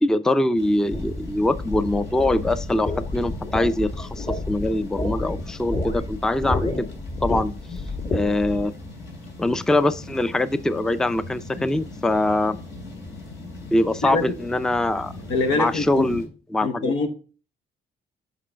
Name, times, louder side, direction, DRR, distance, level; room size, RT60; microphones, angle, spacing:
voice 1, 0.0-6.9 7.2-7.5 8.1-8.7 9.4-12.6 13.7-15.1 15.5-16.9, left 1 dB, 5° left, 0.4 m, -23 dB
sound 1, 0.6-16.3, left 2 dB, 70° left, 3.1 m, -40 dB
sound 2, 0.9-8.6, left 2 dB, 30° left, 1.2 m, -30 dB
voice 2, 14.0-14.4 15.3-16.1 16.6-17.1, left 3 dB, 85° left, 1.0 m, -24 dB
7.5 x 5.2 x 3.3 m
cardioid pair, 70°, 21 cm